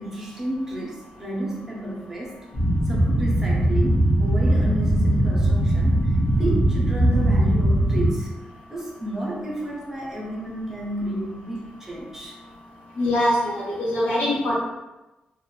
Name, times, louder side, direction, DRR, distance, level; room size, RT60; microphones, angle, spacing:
voice 1, 0.0-2.4 2.8-8.3 8.7-12.4, right 1 dB, 15° right, -3 dB, 0.4 m, -31 dB
sound 1, 2.5-8.1, right 1 dB, 35° left, 0.5 m, -20 dB
voice 2, 13.0-14.6, left 1 dB, 70° left, -6 dB, 0.9 m, -23 dB
2.9 x 2.0 x 2.2 m, 1.0 s
wide cardioid pair, 180°, 3 cm